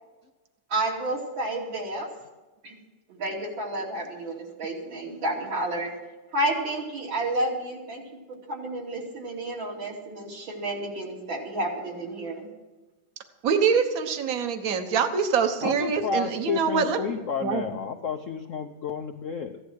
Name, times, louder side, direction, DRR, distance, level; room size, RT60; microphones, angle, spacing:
voice 1, 0.7-2.1 2.6-2.8 3.1-5.9 6.3-8.0 8.5-12.5, right 1 dB, 70° right, -2 dB, 3.6 m, -30 dB
voice 2, 13.4-17.6, right 6 dB, 50° right, 7 dB, 1.5 m, -25 dB
voice 3, 15.6-19.6, left 5 dB, 70° left, 6 dB, 0.7 m, -31 dB
15.5 x 11.0 x 6.3 m, 1.2 s
omnidirectional pair, 2.2 m